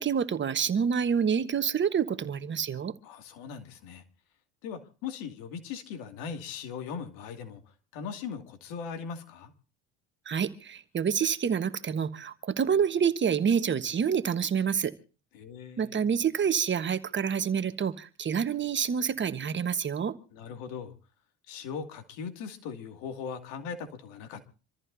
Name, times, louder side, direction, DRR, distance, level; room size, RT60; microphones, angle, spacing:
voice 1, 0.0-2.9 10.3-14.9 15.8-20.1, right 7 dB, 35° right, 1.3 m, -27 dB
voice 2, 3.0-4.0 4.6-7.6 7.9-9.5 15.3-16.0 20.3-20.9 21.5-24.4, left 6 dB, 80° left, 2.5 m, -39 dB
27.0 x 14.5 x 2.7 m
supercardioid pair, 95°, 34 cm